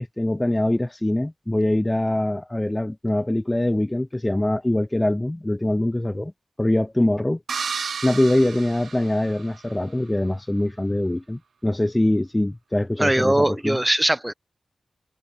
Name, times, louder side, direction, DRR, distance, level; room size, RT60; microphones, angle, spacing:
voice 1, 0.0-6.3 6.6-7.4 8.0-13.8, left 1 dB, 10° left, 0.9 m, -23 dB
sound 1, 7.5-9.7, right 6 dB, 75° right, 2.4 m, -32 dB
voice 2, 13.0-14.3, right 1 dB, 10° right, 1.3 m, -20 dB
wide cardioid pair, 145°, 0 cm